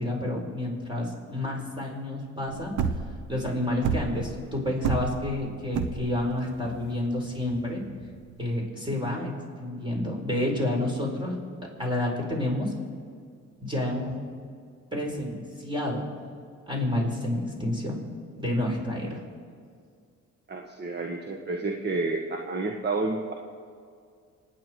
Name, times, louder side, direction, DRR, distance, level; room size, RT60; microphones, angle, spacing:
voice 1, 0.0-2.7 3.3-7.8 8.4-9.3 9.6-11.4 11.8-12.7 13.6-14.1 14.9-16.0 16.7-18.0 18.3-19.2, left 1 dB, 15° right, 0 dB, 4.8 m, -29 dB
sound 1, 2.5-8.4, right 6 dB, 80° right, 1.2 m, -30 dB
voice 2, 20.5-23.3, right 3 dB, 35° right, 3 dB, 1.4 m, -30 dB
28.0 x 9.6 x 4.7 m, 2.2 s
cardioid pair, 90°, 30 cm